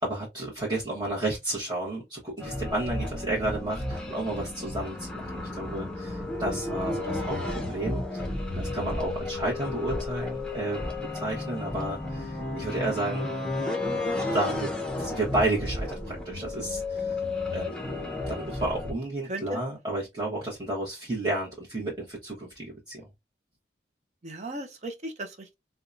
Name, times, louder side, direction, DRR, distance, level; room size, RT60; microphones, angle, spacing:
voice 1, 0.0-7.4 7.7-10.8 11.1-13.3 14.3-14.7 15.0-17.2 17.5-23.1, right 2 dB, 25° right, 0.9 m, -32 dB
sound 1, 2.4-18.9, left 2 dB, 5° left, 0.8 m, -33 dB
voice 2, 17.6-18.0 19.3-19.6 24.2-25.5, right 1 dB, 40° right, 0.6 m, -37 dB
4.4 x 2.2 x 2.5 m
head